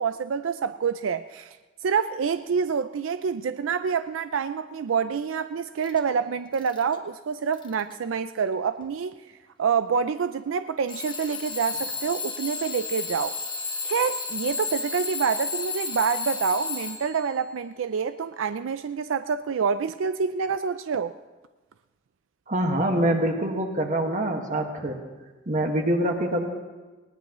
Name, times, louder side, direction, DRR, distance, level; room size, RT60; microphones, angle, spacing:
voice 1, 0.0-1.6 1.8-9.1 9.6-13.4 13.8-21.1, right 6 dB, 85° right, 0.4 m, -27 dB
Alarm / Clock, 5.8-6.0 6.5-7.0 7.5-7.9 8.8-8.9 10.9-17.3, left 4 dB, 25° left, 1.0 m, -32 dB
voice 2, 22.5-25.0 25.5-26.5, right 1 dB, 40° right, 1.7 m, -25 dB
19.5 x 19.0 x 3.1 m
head